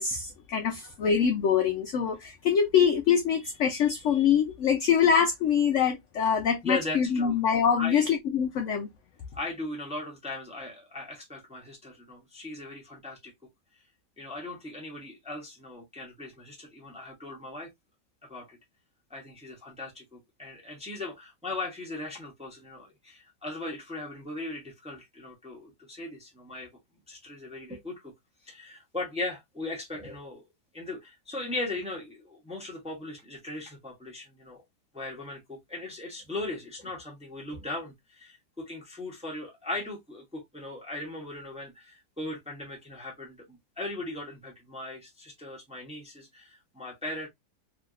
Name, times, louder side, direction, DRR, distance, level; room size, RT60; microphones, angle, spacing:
voice 1, 0.0-8.9, left 7 dB, 75° left, 0.6 m, -24 dB
voice 2, 6.6-7.4 7.8-8.0 9.3-13.3 14.2-17.7 18.3-18.6 19.1-26.7 27.1-28.1 28.4-30.5 30.7-34.6 34.9-43.5 43.8-47.3, left 2 dB, 5° right, 0.6 m, -38 dB
3.2 x 2.7 x 2.3 m
omnidirectional pair, 1.8 m